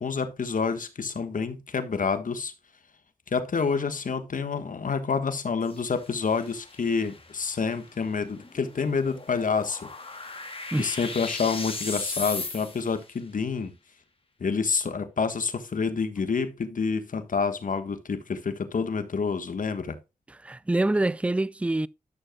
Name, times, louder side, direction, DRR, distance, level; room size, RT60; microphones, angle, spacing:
voice 1, 0.0-2.5 3.3-9.9 10.8-13.7 14.4-20.0, left 5 dB, 65° left, 1.4 m, -28 dB
sound 1, 5.6-13.0, left 3 dB, 40° left, 2.1 m, -38 dB
voice 2, 20.3-21.9, right 2 dB, 10° right, 0.4 m, -26 dB
12.5 x 6.6 x 2.3 m
cardioid pair, 45°, 15 cm